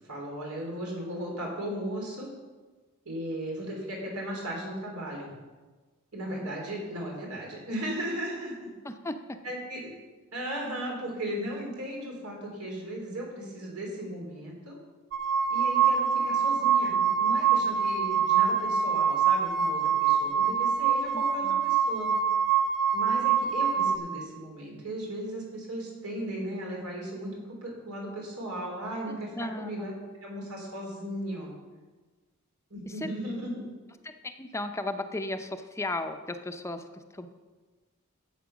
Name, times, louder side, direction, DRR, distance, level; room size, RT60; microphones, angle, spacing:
voice 1, 0.1-2.3 3.1-5.3 6.1-8.7 9.4-9.9 10.3-14.8 15.5-22.1 22.9-29.3 29.6-29.9 30.2-31.5 32.7-33.7, right 1 dB, 90° right, -1 dB, 3.8 m, -36 dB
voice 2, 8.8-9.4 21.1-21.6 29.1-29.9 32.9-33.1 34.2-37.3, left 2 dB, 15° left, 7 dB, 0.6 m, -36 dB
sound 1, 15.1-24.0, right 7 dB, 60° right, 1.5 m, -25 dB
12.0 x 8.0 x 6.0 m, 1.3 s
head